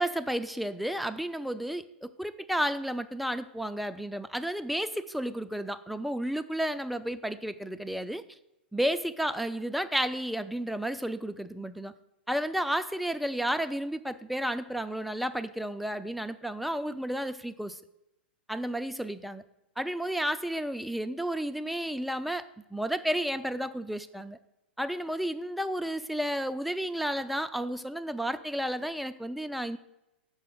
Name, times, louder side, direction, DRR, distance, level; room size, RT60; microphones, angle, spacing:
voice 1, 0.0-8.2 8.7-11.9 12.3-17.8 18.5-19.4 19.8-22.4 22.7-24.4 24.8-29.8, equal, ahead, 10 dB, 0.4 m, -32 dB
6.2 x 5.0 x 5.5 m, 0.90 s
figure-of-eight pair, 100°, 6 cm